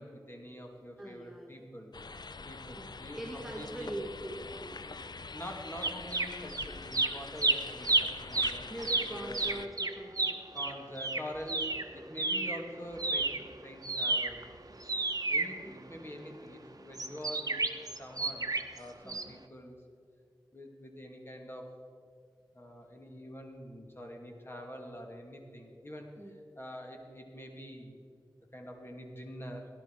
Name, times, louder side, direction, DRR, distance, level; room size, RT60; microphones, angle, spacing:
voice 1, 0.0-1.9 2.4-3.9 5.3-9.6 10.5-11.7 11.9-13.3 13.6-14.5 15.3-17.6 18.0-18.5 18.8-19.8 20.5-21.8 22.5-26.1 26.6-28.0 28.5-29.7, equal, 30° left, 1 dB, 2.7 m, -45 dB
voice 2, 1.0-1.7 2.7-4.8 8.7-10.4 15.6-15.8 19.0-19.3 26.2-26.3, right 1 dB, ahead, 0 dB, 1.9 m, -42 dB
sound 1, 1.9-9.7, left 4 dB, 60° left, 0.6 m, -45 dB
sound 2, 5.8-6.7 6.9-12.6 12.9-16.2 16.9-18.8 19.1-19.2, right 3 dB, 45° right, 1.1 m, -31 dB
17.5 x 11.5 x 4.9 m, 2.2 s
wide cardioid pair, 55°, 8 cm